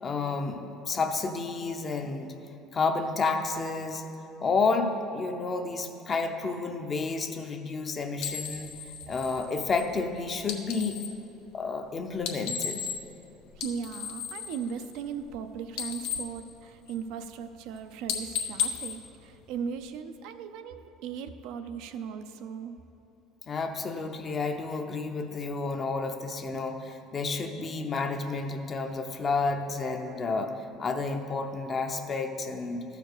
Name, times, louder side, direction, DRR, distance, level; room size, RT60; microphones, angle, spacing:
voice 1, 0.0-2.3 2.7-4.0 4.4-8.7 9.1-11.0 11.5-12.9 23.5-32.8, left 4 dB, 30° left, 6 dB, 0.7 m, -30 dB
sound 1, 8.2-11.2 12.1-13.2 13.5-15.4 15.6-17.2 17.6-17.8 18.1-19.9, left 8 dB, 80° left, 0.9 m, -35 dB
voice 2, 13.5-22.7, right 6 dB, 75° right, 8 dB, 0.6 m, -38 dB
13.0 x 5.0 x 6.6 m, 2.8 s
cardioid pair, 125°, 0 cm